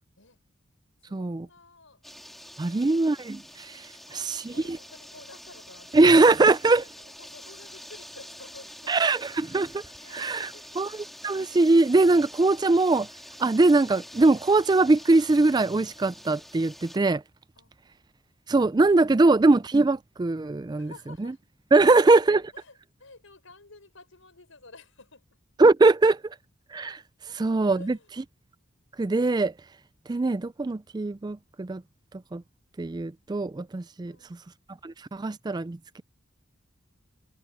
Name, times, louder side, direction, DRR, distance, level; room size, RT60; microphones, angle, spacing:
voice 1, 1.0-2.0 2.3-2.9 3.9-9.1 10.0-10.8 17.6-17.7 20.8-21.4 21.8-25.3 27.3-27.4 27.7-28.1 34.1-34.5, left 3 dB, 75° left, 5.5 m, -51 dB
sound 1, 2.0-17.0, equal, ahead, 4.0 m, -46 dB
voice 2, 2.6-3.7 4.3-4.4 5.9-6.8 8.9-9.8 10.1-10.5 10.8-10.9 11.2-13.1 13.4-17.2 18.5-20.9 21.2-21.3 21.7-22.4 25.6-26.2 26.7-27.0 27.4-28.0 29.0-29.5 30.1-31.8 32.3-32.4 32.8-34.1 34.8-36.0, right 3 dB, 20° right, 0.4 m, -21 dB
head